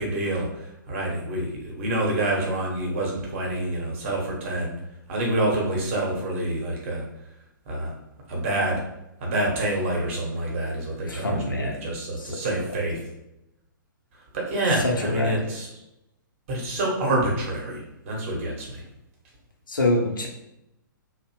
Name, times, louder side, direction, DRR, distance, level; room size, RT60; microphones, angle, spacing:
voice 1, 0.0-4.7 5.1-7.0 7.7-7.9 8.3-8.8 9.2-13.0 14.3-15.7 16.5-18.8, right 1 dB, 40° right, -2 dB, 0.8 m, -27 dB
voice 2, 11.1-11.8 12.2-12.4 14.7-15.5 19.7-20.3, left 2 dB, 75° left, 0 dB, 0.6 m, -26 dB
2.6 x 2.0 x 2.9 m, 0.88 s
figure-of-eight pair, 120°, 11 cm